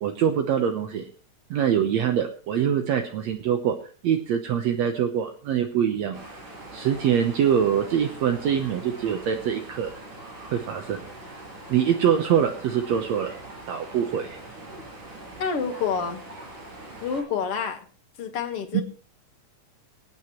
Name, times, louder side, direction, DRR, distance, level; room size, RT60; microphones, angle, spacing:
voice 1, 0.0-1.0 1.5-3.8 4.0-6.3 6.7-9.9 10.5-11.0 11.7-13.3 13.7-14.4 18.7-18.8, right 8 dB, 70° right, 4 dB, 2.1 m, -24 dB
sound 1, 6.1-17.2, right 2 dB, 85° right, 8.0 m, -42 dB
voice 2, 15.4-16.2 17.0-17.9 18.2-18.8, left 6 dB, 55° left, 5 dB, 2.2 m, -28 dB
24.0 x 9.1 x 3.1 m, 0.40 s
omnidirectional pair, 3.5 m